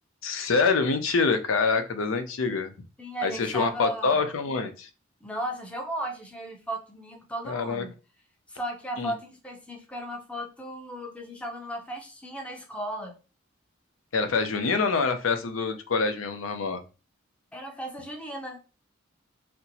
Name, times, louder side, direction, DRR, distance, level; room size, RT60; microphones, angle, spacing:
voice 1, 0.2-2.7 3.2-4.9 7.4-7.9 9.0-9.1 14.1-16.8, left 4 dB, 85° left, 8 dB, 0.5 m, -26 dB
voice 2, 3.0-4.2 5.2-8.0 8.5-13.1 17.5-18.6, right 1 dB, 5° left, 1 dB, 0.6 m, -35 dB
4.2 x 2.0 x 2.6 m, 0.32 s
head